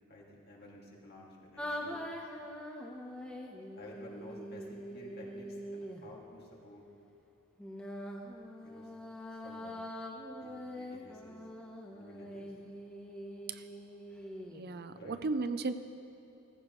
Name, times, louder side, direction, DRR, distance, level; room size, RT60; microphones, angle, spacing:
voice 1, 0.1-2.0 3.8-6.8 8.6-8.9 9.4-9.8 10.4-11.4 11.9-12.5 14.9-15.2, left 1 dB, 45° left, -3 dB, 2.4 m, -52 dB
sound 1, 1.6-6.1 7.6-14.6, equal, 5° left, 1.0 m, -43 dB
voice 2, 14.5-15.7, right 3 dB, 45° right, 10 dB, 0.5 m, -35 dB
15.5 x 14.5 x 3.2 m, 2.8 s
head